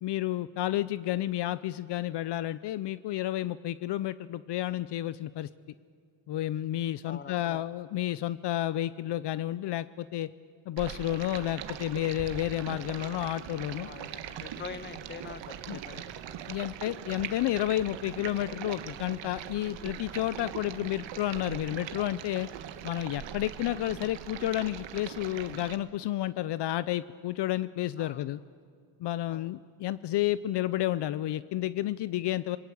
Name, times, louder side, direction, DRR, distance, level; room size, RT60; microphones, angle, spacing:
voice 1, 0.0-5.5 6.3-10.3 10.7-13.9 15.7-15.8 16.5-22.5 22.8-28.4 29.0-32.6, left 14 dB, 65° left, 16 dB, 0.6 m, -31 dB
voice 2, 7.0-7.7 13.7-16.6 28.0-28.2 29.3-29.6, left 6 dB, 25° left, 12 dB, 1.1 m, -45 dB
Stream, 10.8-25.8, right 10 dB, 75° right, 1.4 m, -41 dB
26.0 x 21.5 x 8.6 m, 2.1 s
cardioid pair, 130°, 45 cm